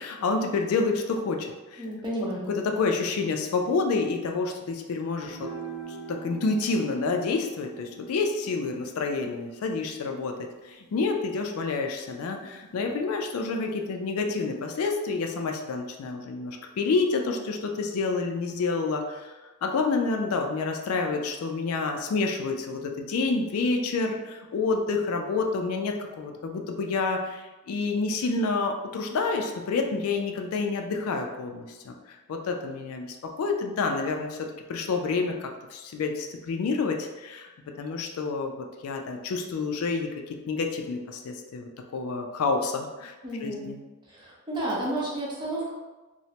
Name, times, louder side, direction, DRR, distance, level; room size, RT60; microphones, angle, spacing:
voice 1, 0.0-1.8 2.5-5.5 6.1-10.3 10.6-19.3 19.6-31.9 32.3-34.4 34.7-37.5 37.8-43.1 43.4-43.8, left 4 dB, 70° left, 3 dB, 0.3 m, -28 dB
voice 2, 1.8-2.5 43.2-43.8 44.1-45.7, right 1 dB, 20° right, -6 dB, 0.7 m, -31 dB
sound 1, 5.2-11.8, right 6 dB, ahead, 1.0 m, -44 dB
3.0 x 2.1 x 2.8 m, 1.2 s
head